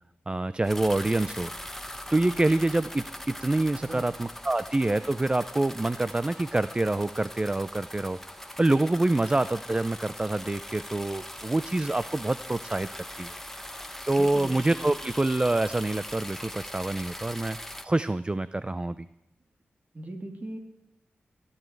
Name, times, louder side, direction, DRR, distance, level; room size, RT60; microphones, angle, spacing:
voice 1, 0.3-1.5 2.1-8.2 8.6-13.3 14.1-17.6 17.8-19.0, right 2 dB, 25° right, 15 dB, 0.5 m, -26 dB
sound 1, 0.6-17.8, left 1 dB, 10° left, 1.2 m, -41 dB
voice 2, 14.1-15.1 19.9-20.6, right 1 dB, 40° right, 4 dB, 2.6 m, -40 dB
17.5 x 11.0 x 4.6 m, 0.90 s
cardioid pair, 50°, 4 cm